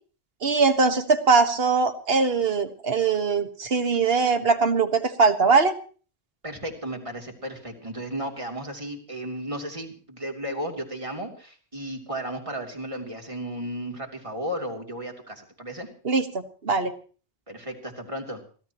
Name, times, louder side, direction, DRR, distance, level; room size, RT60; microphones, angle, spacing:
voice 1, 0.4-5.7 16.0-16.3 16.6-16.9, right 4 dB, 65° right, 9 dB, 1.7 m, -21 dB
voice 2, 6.4-15.9 17.5-18.4, right 1 dB, 30° right, 2 dB, 3.1 m, -34 dB
24.5 x 16.5 x 3.0 m, 0.40 s
omnidirectional pair, 1.1 m